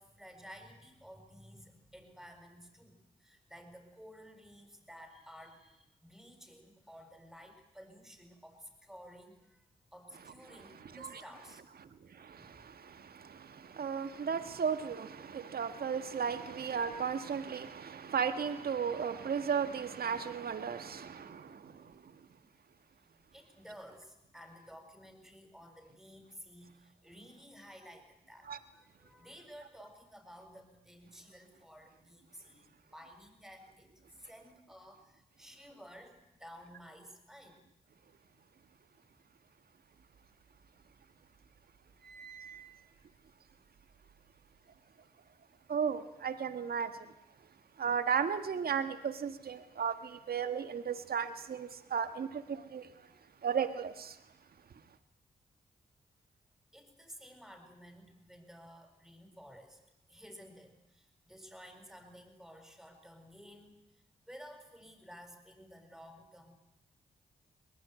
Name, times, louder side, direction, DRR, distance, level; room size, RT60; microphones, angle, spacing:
voice 1, 0.0-11.6 12.3-12.5 14.4-14.5 23.1-37.6 56.7-59.8 60.1-63.8 64.2-66.5, equal, ahead, 7.0 m, -54 dB
voice 2, 10.8-11.2 12.1-22.1 28.5-28.6 45.7-47.1 47.8-52.9 53.4-54.2, right 7 dB, 70° right, 1.6 m, -35 dB
sound 1, 40.0-41.0 41.4-44.8, right 7 dB, 85° right, 2.9 m, -56 dB
23.0 x 19.0 x 9.5 m
cardioid pair, 50°, 16 cm